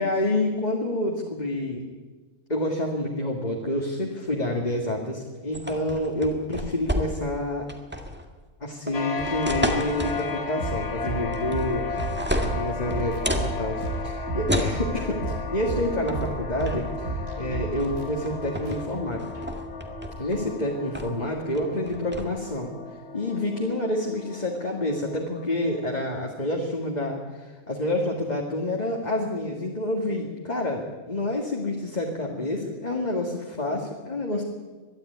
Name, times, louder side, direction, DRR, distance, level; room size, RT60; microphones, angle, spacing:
voice 1, 0.0-1.8 2.5-7.7 8.6-12.0 12.4-19.2 20.2-22.7 23.1-34.4, left 1 dB, 30° left, 0 dB, 2.1 m, -28 dB
sound 1, 5.5-7.4 7.7-8.2 8.9-10.3 11.3-11.7 12.0-13.5 14.5-14.8 16.1-16.3 16.6-16.9 17.8-17.9 18.3-18.8 19.2-20.4 20.9-21.2 21.5-22.2, equal, 10° right, 1.9 m, -30 dB
sound 2, 8.9-26.2, left 4 dB, 50° left, 1.6 m, -36 dB
sound 3, 10.6-20.2, right 2 dB, 65° right, 4.3 m, -33 dB
22.0 x 13.0 x 9.4 m, 1.4 s
omnidirectional pair, 1.4 m